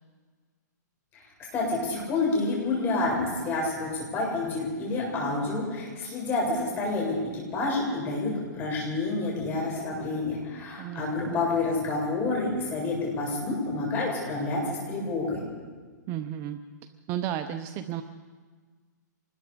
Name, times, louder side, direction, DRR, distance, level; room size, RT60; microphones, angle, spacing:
voice 1, 1.5-15.4, left 3 dB, 20° left, -2 dB, 7.8 m, -28 dB
voice 2, 10.8-11.4 16.1-16.6 17.1-18.0, right 11 dB, 25° right, 9 dB, 0.7 m, -33 dB
25.5 x 20.5 x 5.2 m, 1.5 s
hypercardioid pair, 155°, 10 cm